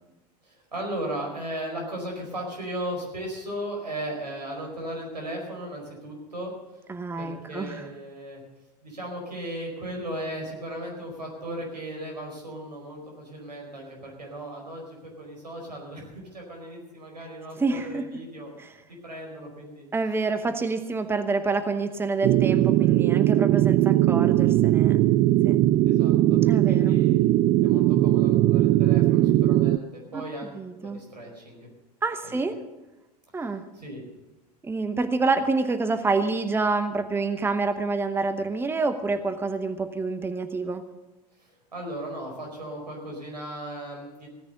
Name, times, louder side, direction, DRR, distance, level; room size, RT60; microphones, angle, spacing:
voice 1, 0.4-6.5 7.2-8.4 8.8-18.5 19.0-19.9 25.8-26.4 26.7-27.3 27.6-30.5 30.8-31.6 32.2-32.4 33.7-34.0 41.4-44.3, right 1 dB, 85° right, -1 dB, 4.9 m, -36 dB
voice 2, 6.9-7.8 17.6-18.0 18.6-18.7 19.9-25.0 25.4-25.6 26.5-27.0 30.1-30.2 30.5-31.0 32.0-32.6 33.3-33.6 34.6-40.8, right 3 dB, 10° right, 9 dB, 0.9 m, -27 dB
sound 1, 22.2-29.8, right 14 dB, 35° right, 0.4 m, -20 dB
16.5 x 10.0 x 6.7 m, 1.1 s
figure-of-eight pair, 85°, 21 cm